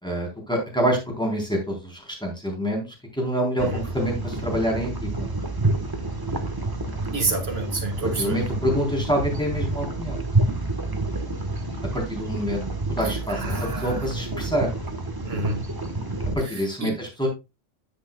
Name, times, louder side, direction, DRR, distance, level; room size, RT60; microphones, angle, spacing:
voice 1, 0.0-2.9 3.1-5.3 8.2-10.2 11.9-12.6 12.9-14.7 16.3-17.3, equal, 5° left, 3.9 m, -26 dB
sound 1, 3.6-16.3, right 2 dB, 20° right, 1.3 m, -28 dB
voice 2, 7.1-8.4 13.0-14.1 14.5-14.7 15.2-15.6 16.4-17.0, right 2 dB, 55° right, 2.0 m, -30 dB
10.0 x 8.2 x 2.3 m
omnidirectional pair, 1.2 m